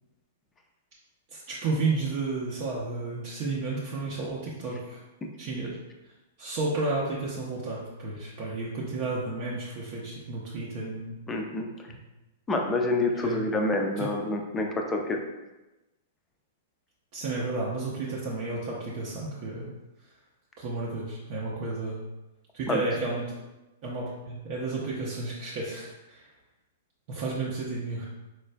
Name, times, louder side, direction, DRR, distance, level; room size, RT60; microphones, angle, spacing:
voice 1, 1.3-5.0 5.4-5.8 6.4-11.2 11.9-12.0 13.2-13.4 14.0-14.1 17.1-19.7 20.6-22.0 22.5-23.3 23.8-26.3 27.1-28.0, right 3 dB, 45° right, -5 dB, 0.6 m, -32 dB
voice 2, 11.3-11.7 12.5-15.2 22.7-22.8, left 2 dB, 15° left, 2 dB, 0.4 m, -27 dB
4.3 x 2.4 x 2.2 m, 1.0 s
figure-of-eight pair, 105°, 0 cm